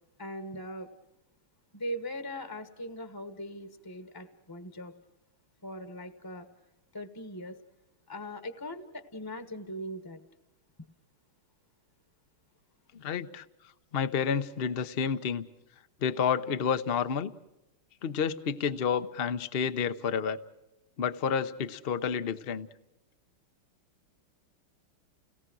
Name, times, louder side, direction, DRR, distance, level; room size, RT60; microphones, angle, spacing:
voice 1, 0.2-0.9 1.7-4.9 5.6-6.5 6.9-7.6 8.1-10.2, equal, 15° left, 9 dB, 0.9 m, -40 dB
voice 2, 12.9-13.4 13.9-15.4 16.0-17.3 18.0-20.4 21.0-22.7, left 7 dB, 65° left, 10 dB, 0.5 m, -30 dB
30.0 x 18.5 x 6.2 m, 0.93 s
omnidirectional pair, 2.3 m